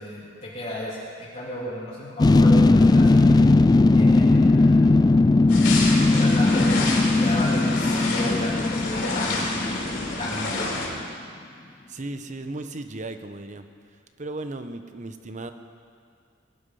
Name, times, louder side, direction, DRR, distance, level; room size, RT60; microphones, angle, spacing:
voice 1, 0.0-3.3 3.9-4.9 6.1-9.7 10.2-10.9, left 1 dB, 40° left, -7 dB, 2.4 m, -34 dB
sound 1, 2.2-10.7 11.0-11.1, left 2 dB, 20° left, 0.3 m, -18 dB
sound 2, 5.5-10.9, left 2 dB, 65° left, 3.7 m, -29 dB
voice 2, 11.9-13.7 14.2-15.5, right 2 dB, 40° right, 8 dB, 0.9 m, -35 dB
21.0 x 12.0 x 5.6 m, 2.2 s
head